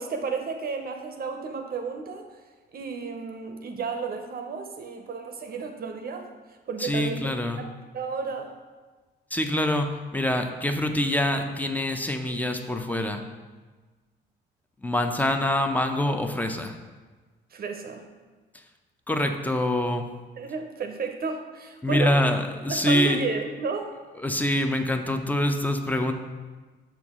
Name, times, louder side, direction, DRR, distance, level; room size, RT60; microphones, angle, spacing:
voice 1, 0.0-2.3 2.7-6.3 6.7-7.3 7.6-7.7 7.9-8.5 17.5-18.0 20.4-22.2 22.7-24.0, right 5 dB, 50° right, 5 dB, 0.6 m, -32 dB
voice 2, 6.8-7.6 9.3-13.2 14.8-16.8 19.1-20.1 21.8-23.2 24.2-26.1, left 1 dB, 10° left, 6 dB, 0.5 m, -25 dB
6.2 x 4.5 x 3.6 m, 1.3 s
cardioid pair, 90°, 20 cm